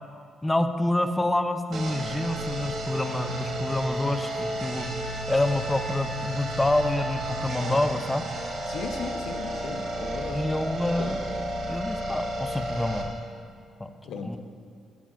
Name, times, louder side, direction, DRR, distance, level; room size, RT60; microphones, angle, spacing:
voice 1, 0.4-4.9 5.3-8.4 10.3-11.3 11.6-13.2 13.8-13.9 14.2-14.4, left 1 dB, 10° left, 8 dB, 0.5 m, -27 dB
sound 1, 1.7-13.0, right 1 dB, 60° right, 1.4 m, -32 dB
voice 2, 8.7-10.4 11.0-11.1 14.0-14.4, left 5 dB, 80° left, 5 dB, 0.8 m, -36 dB
14.5 x 8.7 x 2.5 m, 2.3 s
cardioid pair, 90°, 0 cm